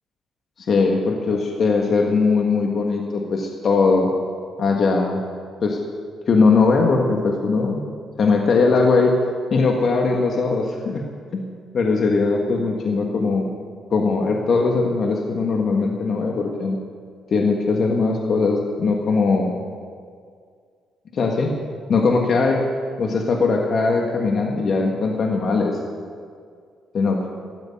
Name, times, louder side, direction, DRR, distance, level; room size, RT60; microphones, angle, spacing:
voice 1, 0.7-4.1 4.6-5.2 5.6-5.8 6.3-7.8 8.2-9.2 9.5-11.1 11.3-13.5 13.9-16.8 17.3-19.5 21.1-21.6 21.9-22.6 23.0-25.8 26.9-27.3, left 4 dB, 55° left, 1 dB, 1.6 m, -20 dB
13.5 x 7.9 x 8.7 m, 2.1 s
cardioid pair, 90°, 0 cm